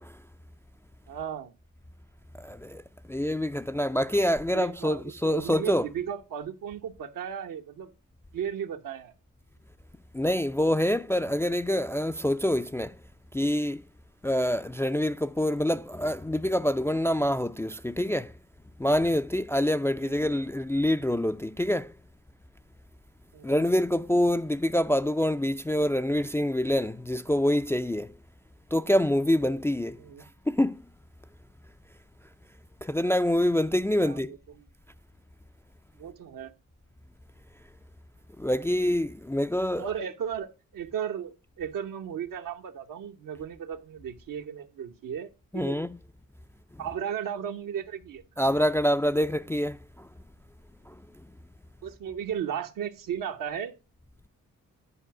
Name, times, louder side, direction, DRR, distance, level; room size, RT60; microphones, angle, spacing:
voice 1, 1.1-1.5 4.5-7.9 8.3-9.1 20.0-20.3 23.3-23.6 30.0-30.2 33.9-34.6 36.0-36.5 39.7-45.8 46.8-48.2 51.8-53.7, right 8 dB, 75° right, 1.0 m, -35 dB
voice 2, 2.4-2.8 3.1-5.9 10.1-13.0 13.3-13.8 14.2-18.3 18.8-21.9 23.4-28.1 28.7-30.0 30.5-30.8 32.8-34.3 38.4-39.8 45.5-46.0 48.4-50.1 50.9-51.0, left 1 dB, 10° left, 0.3 m, -26 dB
9.9 x 4.7 x 4.6 m
supercardioid pair, 60°, 33 cm